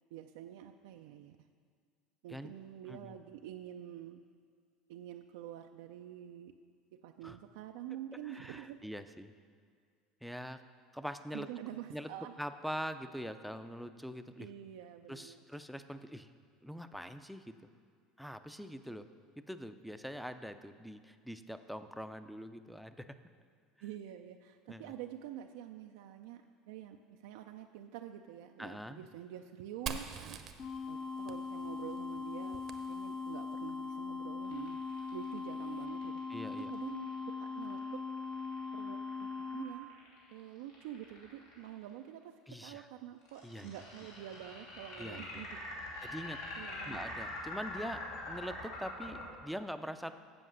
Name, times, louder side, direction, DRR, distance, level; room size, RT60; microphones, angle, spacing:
voice 1, 0.1-1.4 2.2-4.2 4.9-6.6 6.9-8.8 11.3-12.3 14.4-15.4 23.8-30.4 30.9-34.8 35.1-36.2 36.6-38.1 38.7-39.9 40.3-45.6 46.6-47.1, right 11 dB, 80° right, 5 dB, 0.3 m, -47 dB
voice 2, 2.9-3.2 7.2-7.4 8.3-9.3 10.2-10.6 10.9-11.5 11.9-12.1 12.4-14.5 15.1-16.3 16.6-17.6 18.2-19.1 19.4-23.2 24.7-24.9 28.6-29.0 36.3-36.7 42.5-42.9 43.4-43.7 45.0-45.4 46.0-46.4 46.8-50.1, equal, ahead, 10 dB, 0.4 m, -43 dB
Fire, 29.9-33.5, right 6 dB, 45° right, 0.7 m, -46 dB
sound 1, 30.6-39.6, left 5 dB, 45° left, 0.7 m, -40 dB
sound 2, 34.4-41.7 43.3-49.3, left 2 dB, 85° left, 2.9 m, -44 dB
7.8 x 7.1 x 6.2 m, 2.1 s
supercardioid pair, 110°, 0 cm